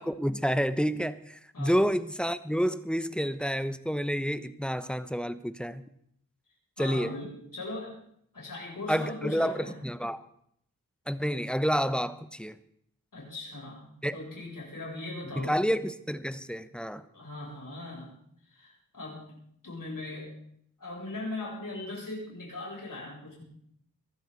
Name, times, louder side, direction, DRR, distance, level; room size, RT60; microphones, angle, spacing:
voice 1, 0.0-5.8 6.8-7.1 8.9-10.2 11.1-12.6 14.0-14.1 15.4-17.0, equal, 5° left, 12 dB, 0.9 m, -29 dB
voice 2, 6.8-8.0 8.3-9.8 13.1-15.6 17.1-18.1 18.5-19.4 19.6-20.3 20.8-23.4, left 2 dB, 70° left, -3 dB, 7.6 m, -39 dB
22.0 x 12.5 x 4.2 m, 0.68 s
wide cardioid pair, 55°, 34 cm